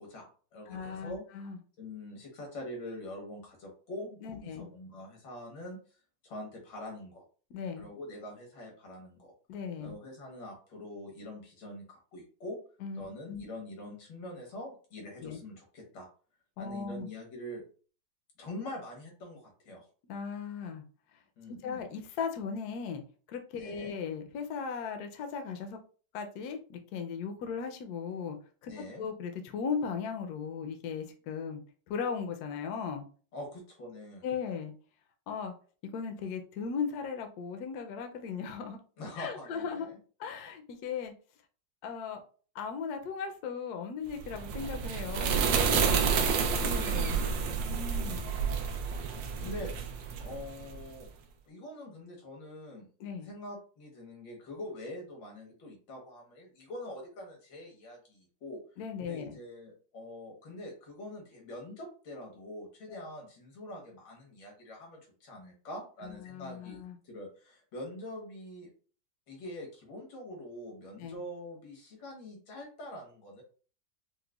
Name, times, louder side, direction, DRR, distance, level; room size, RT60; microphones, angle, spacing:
voice 1, 0.0-1.2 1.8-5.8 6.2-7.2 7.8-9.3 9.8-12.6 13.0-16.1 16.6-17.6 18.4-19.9 21.4-21.8 23.5-23.9 28.7-29.0 33.3-34.3 39.0-40.0 46.4-47.7 49.1-49.7 50.2-51.1 51.4-52.9 53.2-58.6 59.0-68.7 69.3-73.4, left 1 dB, 90° left, 0 dB, 1.9 m, -44 dB
voice 2, 0.7-1.6 4.2-4.7 7.5-7.9 9.5-10.0 12.8-13.4 15.2-15.4 16.6-17.1 20.1-20.8 21.1-21.2 21.5-23.0 23.3-25.8 26.1-28.4 28.6-31.6 31.9-33.0 34.2-34.7 35.3-35.5 35.9-38.8 39.2-39.9 40.2-41.1 41.8-42.2 42.5-46.2 46.6-47.2 47.7-48.3 53.0-53.3 58.8-59.4 62.9-63.1 66.0-67.0 71.0-71.2, left 6 dB, 70° left, 5 dB, 1.0 m, -37 dB
sound 1, 44.2-50.8, right 6 dB, 80° right, 1.3 m, -30 dB
4.8 x 2.1 x 2.3 m, 0.39 s
omnidirectional pair, 2.0 m